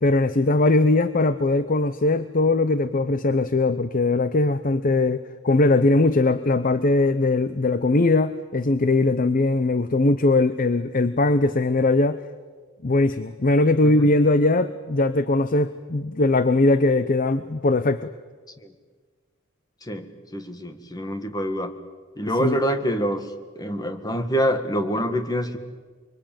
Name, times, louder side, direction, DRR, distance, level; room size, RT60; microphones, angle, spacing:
voice 1, 0.0-12.2 12.8-18.1 22.4-22.6, left 2 dB, 40° left, 13 dB, 0.8 m, -20 dB
voice 2, 19.8-21.7 22.2-23.3 23.6-25.6, equal, 20° left, 7 dB, 1.9 m, -26 dB
24.5 x 24.0 x 9.0 m, 1.5 s
head